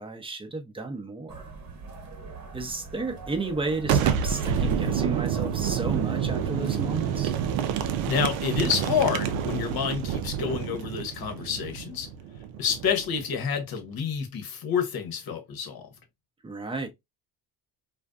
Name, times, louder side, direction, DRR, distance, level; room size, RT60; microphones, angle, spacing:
voice 1, 0.0-1.5 2.5-7.3 16.4-16.9, right 3 dB, 10° right, 0.6 m, -33 dB
sound 1, 1.3-8.3, right 4 dB, 40° right, 1.0 m, -42 dB
Boom, 3.8-13.4, right 8 dB, 85° right, 0.5 m, -28 dB
voice 2, 8.0-12.1 12.6-15.9, left 7 dB, 50° left, 1.0 m, -28 dB
2.5 x 2.3 x 2.2 m
supercardioid pair, 85°, 45 cm